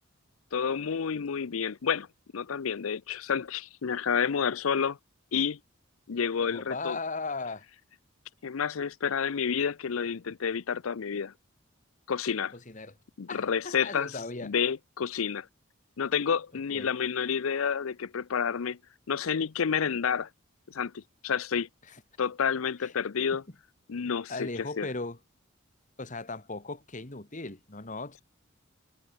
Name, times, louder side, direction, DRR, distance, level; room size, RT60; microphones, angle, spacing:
voice 1, 0.5-2.1 2.3-5.0 5.3-5.6 6.1-7.0 8.4-11.3 12.1-12.5 13.2-14.1 14.4-15.5 16.0-18.8 19.1-20.3 20.7-21.7 22.2-23.4 23.9-24.9, left 6 dB, 85° left, 0.6 m, -29 dB
voice 2, 6.5-7.6 12.5-12.9 13.3-14.5 16.5-17.0 21.9-22.0 22.8-22.9 24.3-25.2 26.0-28.2, left 3 dB, 40° left, 2.1 m, -37 dB
head